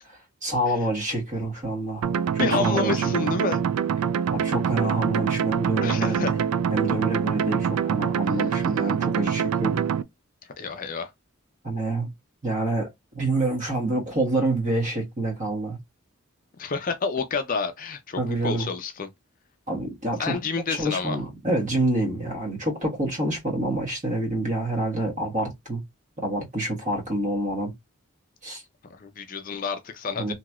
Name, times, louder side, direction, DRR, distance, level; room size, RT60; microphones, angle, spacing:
voice 1, 0.4-3.1 4.3-6.4 6.7-9.8 11.6-12.1 12.4-15.8 18.2-18.7 19.7-20.4 20.7-25.8 26.2-27.7 28.4-28.6 30.2-30.3, right 2 dB, 35° right, 1.4 m, -27 dB
sound 1, 2.0-10.0, right 7 dB, 85° right, 0.3 m, -25 dB
voice 2, 2.4-3.6 5.8-6.3 8.3-8.7 10.6-11.1 16.6-19.1 20.2-21.2 28.9-30.3, left 5 dB, 40° left, 0.5 m, -29 dB
3.0 x 2.8 x 2.3 m
head